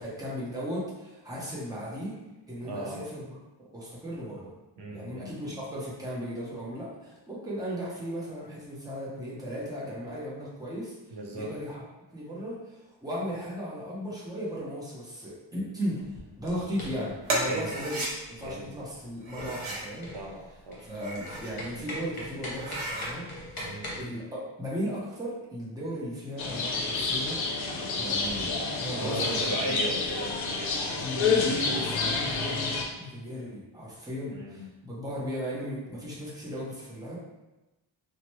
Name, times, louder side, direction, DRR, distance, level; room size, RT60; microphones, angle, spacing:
voice 1, 0.0-2.2 2.5-4.5 4.9-11.0 11.3-11.8 12.1-16.0 16.4-18.0 18.3-20.1 20.9-23.3 23.5-27.4 28.0-29.8 31.0-37.2, equal, 10° right, -7 dB, 0.6 m, -36 dB
voice 2, 2.6-3.0 4.8-5.5 11.1-11.5 17.4-17.7 18.4-18.7 20.1-20.9 23.6-23.9 28.2-28.5 28.9-31.1 34.3-34.7, right 2 dB, 60° right, 0 dB, 0.6 m, -37 dB
sound 1, 16.0-24.0, left 1 dB, 50° left, 0.9 m, -42 dB
sound 2, 17.2-18.1 19.2-19.9 20.8-21.6 22.0-22.1 22.5-23.1, right 1 dB, 90° right, 0.9 m, -33 dB
sound 3, 26.4-32.8, left 4 dB, 80° left, 0.6 m, -29 dB
2.9 x 2.0 x 3.0 m, 1.0 s
wide cardioid pair, 155°, 46 cm